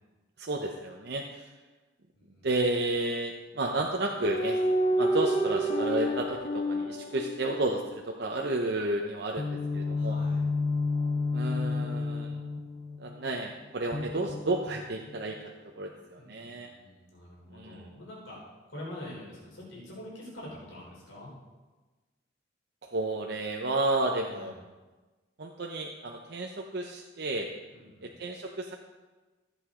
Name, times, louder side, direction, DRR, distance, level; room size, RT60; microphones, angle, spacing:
voice 1, 0.4-1.5 2.4-4.6 5.0-10.2 11.3-12.4 13.0-16.7 17.5-17.9 22.8-24.5 25.4-27.5 28.0-28.8, right 2 dB, 60° right, 1 dB, 0.8 m, -32 dB
voice 2, 2.1-2.5 9.9-10.5 16.0-21.3 24.3-24.5 27.7-28.1, left 1 dB, 85° left, -5 dB, 3.7 m, -46 dB
sound 1, 4.3-7.9 9.4-13.1 13.9-15.1, left 1 dB, 35° left, 0.8 m, -29 dB
14.0 x 8.0 x 3.8 m, 1.2 s
head